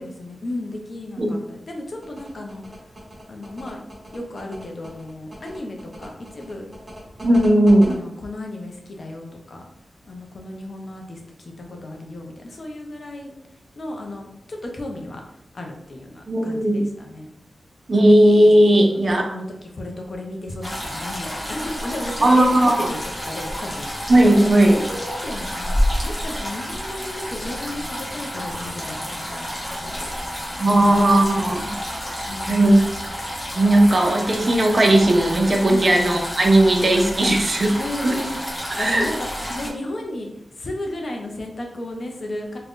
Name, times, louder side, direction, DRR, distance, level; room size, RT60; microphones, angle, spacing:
voice 1, 0.0-2.6 3.3-3.8 4.1-6.7 7.9-9.7 10.1-13.3 13.8-17.3 18.9-23.9 24.7-25.8 26.0-30.1 30.8-31.1 32.3-32.8 35.7-35.9 37.8-39.3 39.5-40.3 40.6-42.6, left 1 dB, 50° left, 2 dB, 0.5 m, -34 dB
sound 1, 2.0-7.9, right 1 dB, 25° right, 1.0 m, -39 dB
voice 2, 7.2-8.0 16.3-16.9 17.9-19.2 22.2-22.8 24.1-24.7 30.6-31.7 32.5-32.8 33.6-37.8 38.0-38.2 38.7-39.1, right 1 dB, 40° right, 2 dB, 0.5 m, -16 dB
sound 2, 20.6-39.7, equal, 20° left, 0.8 m, -30 dB
2.5 x 2.1 x 3.5 m, 0.80 s
wide cardioid pair, 115°, 0 cm